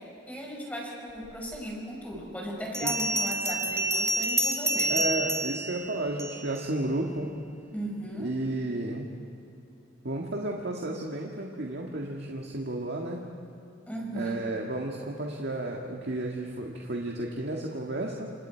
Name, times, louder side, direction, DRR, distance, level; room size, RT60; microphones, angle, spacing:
voice 1, 0.3-5.0 5.5-5.6 7.7-8.3 13.9-14.4, equal, 10° left, -2 dB, 5.3 m, -37 dB
Bell, 1.5-1.6 2.7-6.6, right 1 dB, 15° right, 1.5 m, -28 dB
voice 2, 4.9-7.3 8.2-9.1 10.0-13.2 14.1-18.3, right 1 dB, 65° right, -1 dB, 1.8 m, -32 dB
29.0 x 27.5 x 4.6 m, 2.7 s
head